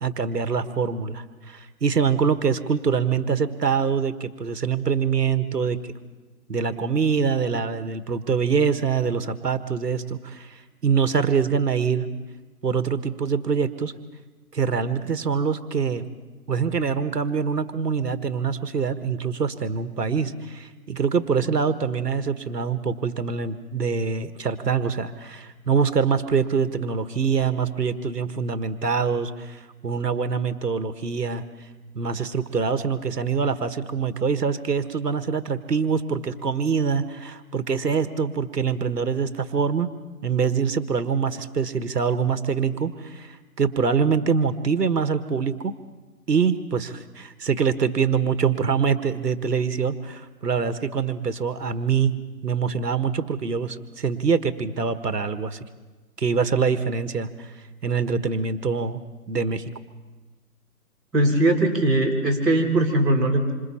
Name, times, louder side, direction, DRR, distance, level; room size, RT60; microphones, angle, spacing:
voice 1, 0.0-5.9 6.5-12.1 12.6-13.9 14.5-16.1 16.5-31.4 31.9-39.9 40.2-45.7 46.3-52.2 52.4-55.6 56.2-57.5 57.8-59.0 59.3-59.7, right 6 dB, 75° right, 10 dB, 1.5 m, -24 dB
voice 2, 61.1-63.5, right 1 dB, ahead, -17 dB, 2.3 m, -20 dB
27.0 x 26.0 x 4.3 m, 1.3 s
hypercardioid pair, 175°, 49 cm